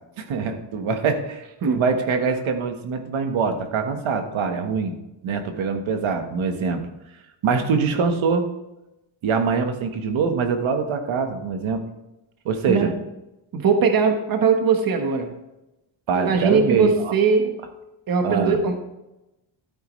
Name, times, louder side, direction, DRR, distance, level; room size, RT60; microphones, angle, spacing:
voice 1, 0.2-4.9 5.2-6.8 7.4-8.5 9.2-11.8 12.4-12.9 16.1-17.1 18.2-18.6, right 5 dB, 75° right, 6 dB, 1.5 m, -24 dB
voice 2, 13.5-15.3 16.1-17.5 18.1-18.8, right 5 dB, 45° right, 5 dB, 1.2 m, -20 dB
12.0 x 9.3 x 3.2 m, 0.94 s
cardioid pair, 130°, 48 cm